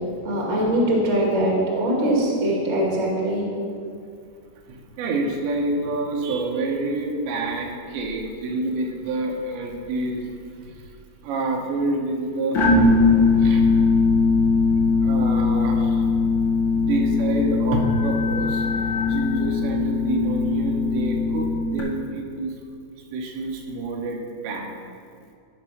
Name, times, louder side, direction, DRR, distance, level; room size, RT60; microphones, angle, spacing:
voice 1, 0.2-3.4, right 1 dB, 35° right, -3 dB, 1.0 m, -22 dB
voice 2, 4.7-10.3 10.6-10.9 11.2-12.6 13.4-13.6 15.0-16.0 16.7-18.7 19.1-22.5 23.1-24.7, right 2 dB, 85° right, 1 dB, 3.4 m, -27 dB
sound 1, 12.5-21.8, left 4 dB, 60° left, 1.2 m, -20 dB
14.0 x 5.1 x 5.8 m, 2.3 s
omnidirectional pair, 5.0 m